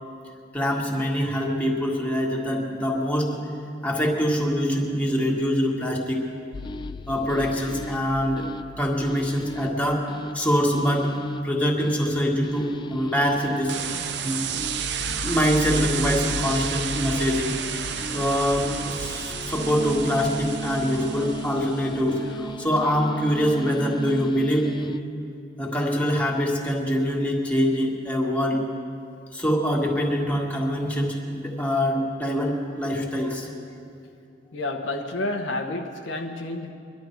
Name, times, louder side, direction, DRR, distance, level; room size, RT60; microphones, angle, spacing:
voice 1, 0.5-3.4 3.8-6.2 7.1-8.4 8.8-10.1 10.3-11.1 11.4-13.8 14.2-14.4 15.1-17.5 18.1-24.9 25.6-28.6 29.3-33.5, equal, 10° left, -2 dB, 1.8 m, -24 dB
sound 1, 6.5-25.0, left 3 dB, 25° left, 0.3 m, -37 dB
sound 2, 13.7-21.9, right 9 dB, 65° right, 0.6 m, -32 dB
Wind instrument woodwind instrument, 19.5-25.1, right 3 dB, 80° right, 1.7 m, -36 dB
voice 2, 34.5-36.7, left 2 dB, 85° left, 2 dB, 1.2 m, -30 dB
23.5 x 11.5 x 4.6 m, 2.5 s
head